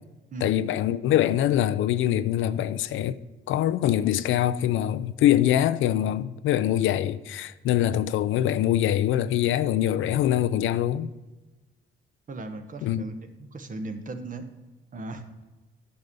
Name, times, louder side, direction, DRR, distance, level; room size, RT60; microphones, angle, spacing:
voice 1, 0.4-3.2 3.5-11.1 12.8-13.0, left 12 dB, 80° left, 0.5 m, -24 dB
voice 2, 12.3-14.4 14.9-15.2, right 2 dB, 40° right, 1.2 m, -37 dB
9.6 x 5.5 x 6.7 m
cardioid pair, 90°, 20 cm